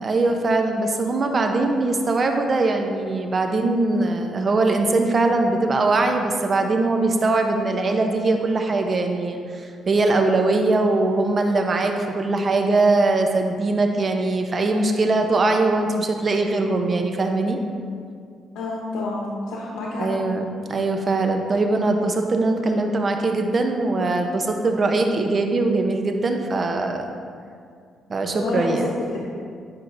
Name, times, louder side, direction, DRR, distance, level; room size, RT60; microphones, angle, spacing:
voice 1, 0.0-17.6 20.0-20.4 20.7-27.1 28.1-28.9, right 2 dB, 40° right, 4 dB, 0.7 m, -21 dB
voice 2, 18.5-20.1 28.4-29.3, left 2 dB, 85° left, -4 dB, 1.0 m, -28 dB
10.0 x 5.7 x 2.6 m, 2.2 s
cardioid pair, 90°, 0 cm